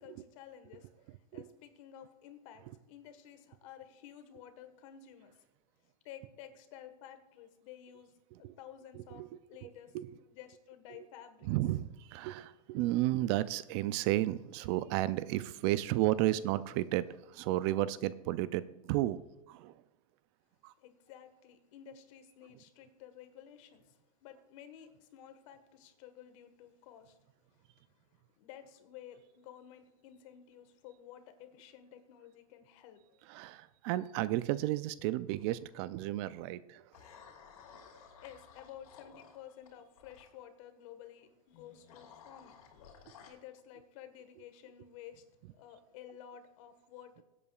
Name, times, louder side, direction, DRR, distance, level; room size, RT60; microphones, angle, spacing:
voice 1, 0.0-5.4 6.0-8.1 8.4-9.2 9.5-9.9 10.3-11.5 20.8-27.2 27.5-33.2 38.0-47.2, left 10 dB, 60° left, 9 dB, 1.4 m, -53 dB
voice 2, 11.5-19.2 19.5-19.7 20.6-20.7 33.3-36.8, right 15 dB, 50° right, 16 dB, 0.4 m, -33 dB
sound 1, 35.3-35.7 36.9-40.3 41.5-43.3, left 6 dB, 75° left, 2.9 m, -56 dB
23.0 x 8.4 x 2.4 m, 1.0 s
supercardioid pair, 130°, 19 cm